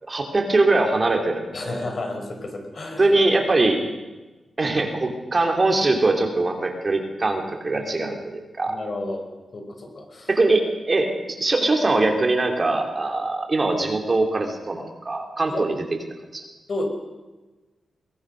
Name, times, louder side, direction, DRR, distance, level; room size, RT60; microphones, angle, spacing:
voice 1, 0.0-1.8 3.0-3.8 4.6-8.8 10.3-15.7 16.3-16.4, right 2 dB, 30° right, 3 dB, 3.0 m, -22 dB
voice 2, 1.5-3.1 7.7-8.4 8.7-9.2 9.5-10.3 15.5-15.6 16.7-16.8, left 2 dB, 45° left, 4 dB, 4.6 m, -32 dB
22.5 x 19.5 x 6.4 m, 1.2 s
wide cardioid pair, 120°, 0 cm